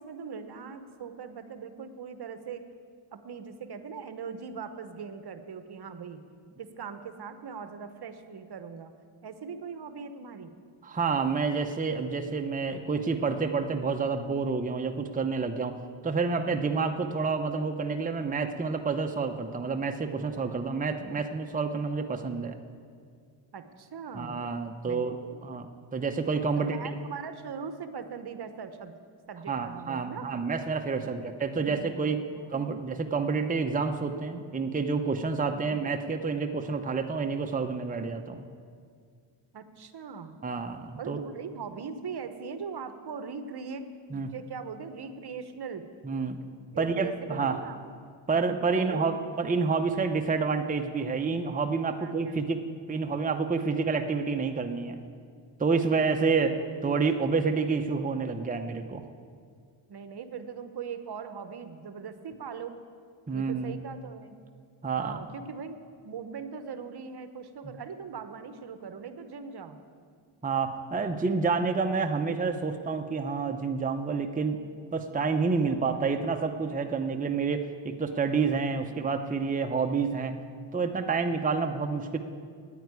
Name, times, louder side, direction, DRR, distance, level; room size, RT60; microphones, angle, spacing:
voice 1, 0.0-2.6 3.1-6.2 6.6-8.9 9.2-10.5 21.0-21.2 23.5-24.4 24.8-25.4 26.6-28.9 29.3-30.3 31.0-32.8 35.5-35.7 39.5-40.4 41.0-45.9 46.7-47.8 48.3-49.2 52.0-52.4 56.3-56.4 59.9-62.8 63.3-64.4 65.0-65.8 66.0-69.8, right 6 dB, 50° right, 9 dB, 1.0 m, -40 dB
voice 2, 10.8-15.8 16.0-22.6 24.2-25.2 25.4-26.8 29.5-32.2 32.5-38.4 40.4-41.2 44.1-44.3 46.0-46.4 46.8-47.5 48.3-52.6 52.9-55.0 55.6-56.6 56.8-59.0 63.3-63.8 64.8-65.2 70.4-74.6 74.9-80.4 80.7-82.2, right 4 dB, 15° right, 5 dB, 0.8 m, -29 dB
9.3 x 9.2 x 9.6 m, 2.1 s
cardioid pair, 75°, 49 cm